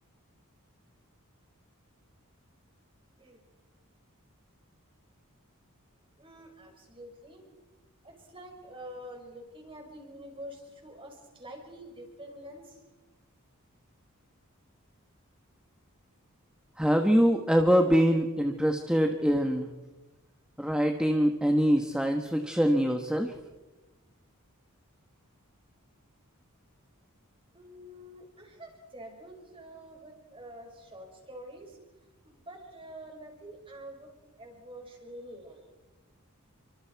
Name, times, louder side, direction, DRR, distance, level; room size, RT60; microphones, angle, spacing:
voice 1, 6.2-7.5 8.0-12.8 27.5-31.8 32.2-34.1 34.4-35.6, right 1 dB, 25° right, 2 dB, 5.7 m, -47 dB
voice 2, 16.8-19.7 20.6-23.3, equal, 5° right, 4 dB, 1.2 m, -24 dB
29.5 x 25.0 x 4.6 m, 1.1 s
head